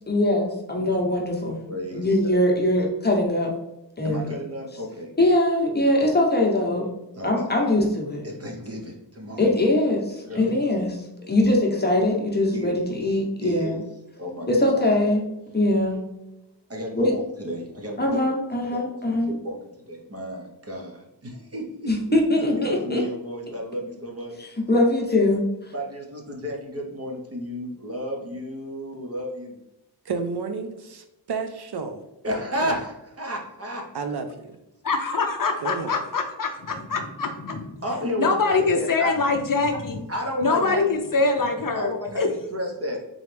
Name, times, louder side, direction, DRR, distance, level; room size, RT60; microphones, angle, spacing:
voice 1, 0.1-1.6 1.9-3.5 4.0-4.3 5.2-6.9 7.2-8.2 9.4-11.0 11.3-13.8 14.5-15.3 15.5-16.1 16.9-17.1 18.0-19.4 21.9-23.0 24.7-25.4, left 1 dB, 25° left, -1 dB, 0.9 m, -22 dB
voice 2, 1.7-2.4 4.0-5.1 7.1-7.3 8.2-9.5 10.3-10.5 12.5-12.8 13.4-13.8 14.2-14.9 16.7-18.2 18.6-18.8 19.1-24.3 25.7-29.6 32.2-33.8 37.8-39.1 40.1-40.9 41.7-43.0, equal, 35° right, 0 dB, 0.9 m, -32 dB
voice 3, 30.1-32.0 32.6-32.7 33.9-34.5 35.6-35.9, right 5 dB, 65° right, 7 dB, 0.5 m, -31 dB
voice 4, 34.8-37.7 38.2-40.0 40.4-41.9 42.2-42.3, left 4 dB, 50° left, 4 dB, 0.5 m, -24 dB
3.9 x 3.1 x 3.3 m, 0.93 s
wide cardioid pair, 115°, 43 cm